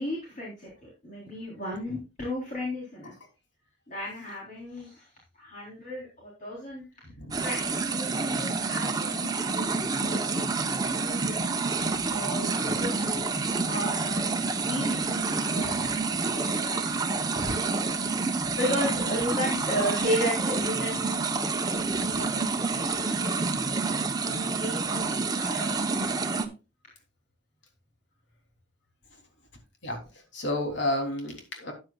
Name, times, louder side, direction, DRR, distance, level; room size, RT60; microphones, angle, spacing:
voice 1, 0.0-3.1 3.9-5.1 5.3-7.0 7.4-9.7 10.0-10.5 11.0-11.5 12.1-13.2 13.6-21.2 22.0-23.5 24.2-26.5, left 1 dB, 45° left, -4 dB, 3.7 m, -35 dB
voice 2, 7.0-7.4 15.7-15.9 29.8-30.0 30.3-31.7, left 1 dB, 75° left, 3 dB, 3.3 m, -31 dB
sound 1, 7.3-26.5, right 4 dB, 20° right, 0.9 m, -28 dB
13.0 x 9.0 x 2.4 m, 0.29 s
head